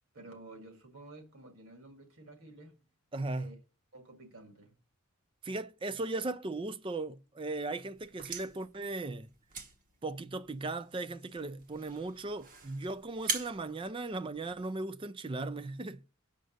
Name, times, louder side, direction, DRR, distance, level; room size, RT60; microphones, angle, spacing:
voice 1, 0.1-2.8 3.4-3.6 3.9-4.8, right 2 dB, 65° right, 2.0 m, -52 dB
voice 2, 3.1-3.5 5.4-9.3 10.0-16.0, right 2 dB, 20° right, 0.4 m, -37 dB
sound 1, 7.9-14.8, right 5 dB, 40° right, 1.0 m, -43 dB
6.6 x 5.2 x 6.4 m
head